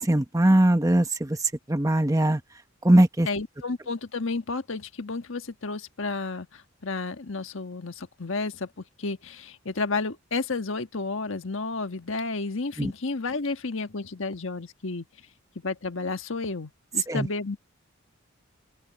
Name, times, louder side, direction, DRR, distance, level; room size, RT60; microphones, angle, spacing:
voice 1, 0.0-2.4 2.8-3.3 12.8-12.9 17.1-17.3, right 1 dB, 15° right, 1.0 m, -21 dB
voice 2, 3.2-15.0 15.5-17.6, left 3 dB, 70° left, 1.4 m, -32 dB
open air
head